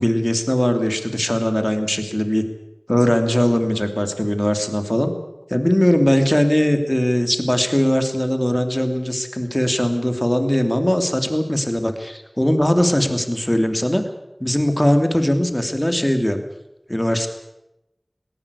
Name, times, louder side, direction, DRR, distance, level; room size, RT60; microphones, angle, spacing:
voice 1, 0.0-2.4 2.9-5.1 5.5-14.0 14.4-16.4 16.9-17.3, equal, 20° left, 7 dB, 2.9 m, -20 dB
19.5 x 18.0 x 8.5 m, 0.90 s
wide cardioid pair, 45°, 0 cm